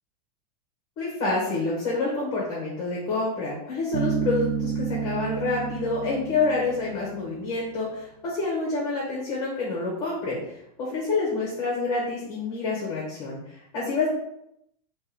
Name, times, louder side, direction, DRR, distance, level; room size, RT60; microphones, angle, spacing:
voice 1, 1.0-14.1, left 3 dB, 20° left, -4 dB, 1.0 m, -28 dB
Bass guitar, 3.9-7.6, right 7 dB, 35° right, 0.5 m, -30 dB
3.6 x 2.9 x 4.7 m, 0.80 s
supercardioid pair, 175°, 20 cm